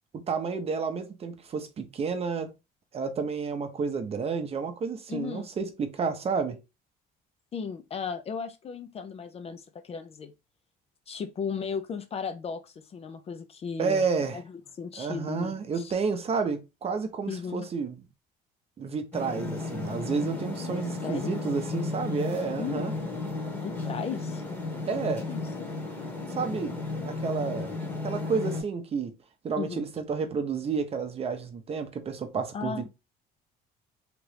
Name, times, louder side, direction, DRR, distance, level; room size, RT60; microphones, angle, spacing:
voice 1, 0.1-2.5 2.9-6.6 13.8-14.4 15.0-18.0 18.8-22.9 24.9-25.3 26.3-26.8 27.0-27.8 28.0-29.2 29.4-32.9, right 5 dB, 35° right, 0.6 m, -30 dB
voice 2, 5.1-5.5 7.5-10.3 11.1-14.0 14.3-14.4 14.8-15.9 17.3-17.7 21.0-21.4 22.6-22.9 23.5-24.4 25.3-25.7 29.6-29.9 32.5-32.9, left 6 dB, 35° left, 0.4 m, -36 dB
sound 1, 19.1-28.6, left 3 dB, 10° left, 1.0 m, -34 dB
2.9 x 2.5 x 3.2 m
cardioid pair, 110°, 17 cm